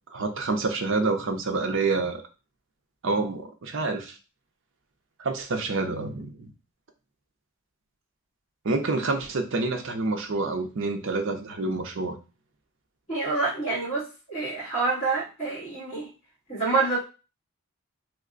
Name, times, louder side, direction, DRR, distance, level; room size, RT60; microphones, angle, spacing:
voice 1, 0.1-2.2 3.0-4.1 5.2-6.5 8.6-12.2, right 3 dB, 60° right, 5 dB, 0.6 m, -27 dB
voice 2, 13.1-16.1 16.5-17.0, right 3 dB, 25° left, -8 dB, 1.8 m, -27 dB
3.2 x 2.1 x 3.7 m, 0.31 s
head